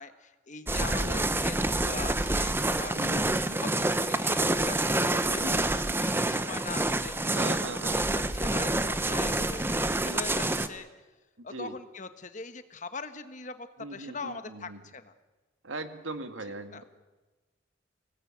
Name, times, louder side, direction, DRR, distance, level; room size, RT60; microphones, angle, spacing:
voice 1, 0.0-3.2 3.6-5.4 6.0-10.9 11.4-15.1 16.7-16.8, left 4 dB, 40° left, 10 dB, 1.3 m, -41 dB
sound 1, 0.7-10.7, right 2 dB, 10° right, 0.9 m, -27 dB
voice 2, 0.8-1.2 2.9-4.0 5.3-5.7 7.3-8.4 10.0-10.3 11.4-11.8 13.8-14.8 15.6-16.8, right 2 dB, 90° right, 8 dB, 2.0 m, -40 dB
24.5 x 19.0 x 8.8 m, 1.2 s
head